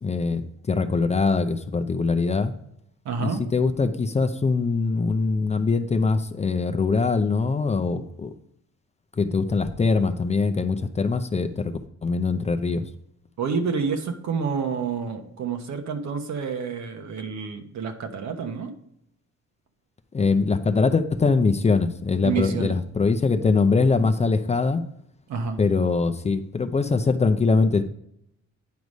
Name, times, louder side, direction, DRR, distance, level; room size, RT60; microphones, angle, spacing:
voice 1, 0.0-2.5 3.2-8.3 9.2-12.8 20.1-24.8 25.6-27.9, left 4 dB, 25° left, 8 dB, 0.5 m, -22 dB
voice 2, 3.0-3.5 13.4-18.7 22.2-22.8 25.3-25.6, right 5 dB, 70° right, 6 dB, 1.2 m, -28 dB
9.4 x 4.8 x 5.3 m, 0.74 s
cardioid pair, 125°, 29 cm